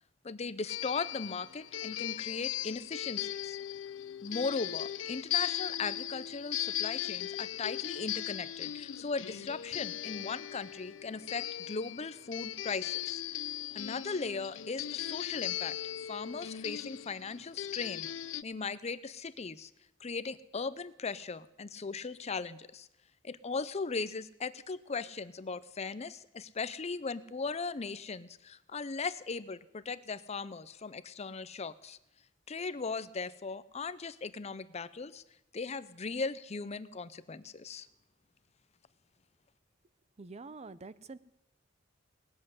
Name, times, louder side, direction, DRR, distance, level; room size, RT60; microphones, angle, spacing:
voice 1, 0.2-3.6 4.2-13.4 13.7-15.7 16.1-18.1 18.4-19.7 20.0-22.9 23.2-32.0 32.5-35.2 35.5-37.9, left 4 dB, 35° left, 15 dB, 0.6 m, -38 dB
sound 1, 0.7-18.4, left 12 dB, 90° left, 0.5 m, -38 dB
voice 2, 40.2-41.2, right 3 dB, 35° right, 16 dB, 0.6 m, -46 dB
19.0 x 7.7 x 9.5 m, 0.87 s
head